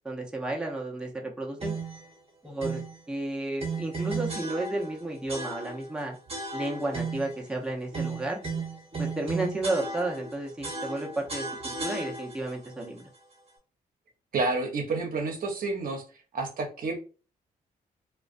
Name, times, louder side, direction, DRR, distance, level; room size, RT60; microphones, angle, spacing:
voice 1, 0.0-1.7 2.4-2.8 3.1-6.2 6.5-8.4 9.0-13.0, right 2 dB, 5° right, -1 dB, 0.7 m, -32 dB
sound 1, 1.6-2.0 2.6-3.0 3.6-5.0 5.3-5.9 6.3-7.4 7.9-10.3 10.6-12.5, right 3 dB, 40° right, 0.9 m, -34 dB
voice 2, 14.3-16.0 16.3-17.0, right 3 dB, 65° right, 3 dB, 0.7 m, -29 dB
2.4 x 2.1 x 2.4 m, 0.36 s
supercardioid pair, 65°, 16 cm